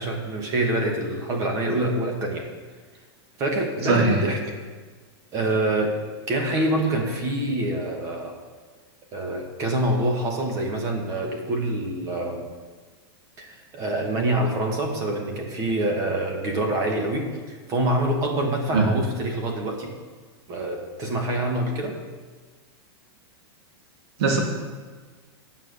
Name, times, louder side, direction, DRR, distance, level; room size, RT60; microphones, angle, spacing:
voice 1, 0.0-2.5 3.4-4.5 5.3-5.9 6.3-8.4 9.1-12.4 13.4-19.9 20.5-22.0, right 1 dB, 25° right, 2 dB, 1.2 m, -26 dB
voice 2, 3.9-4.2 18.7-18.9 24.2-24.4, right 3 dB, 75° right, 1 dB, 2.4 m, -19 dB
9.3 x 5.6 x 6.7 m, 1.4 s
supercardioid pair, 165°, 14 cm